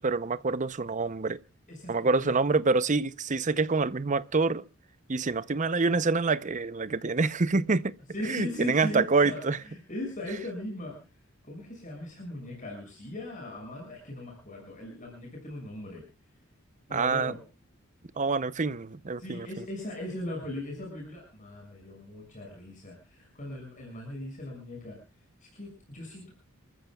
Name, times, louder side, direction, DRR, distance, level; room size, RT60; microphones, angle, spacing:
voice 1, 0.0-1.4 1.9-4.6 5.1-7.9 8.2-9.6 16.9-17.3 18.2-19.5, right 4 dB, 35° right, 0.7 m, -26 dB
voice 2, 1.7-2.4 8.1-10.9 11.4-16.0 16.9-17.4 19.2-25.0 25.4-26.3, left 1 dB, 40° left, 6.4 m, -39 dB
29.5 x 14.5 x 2.3 m
head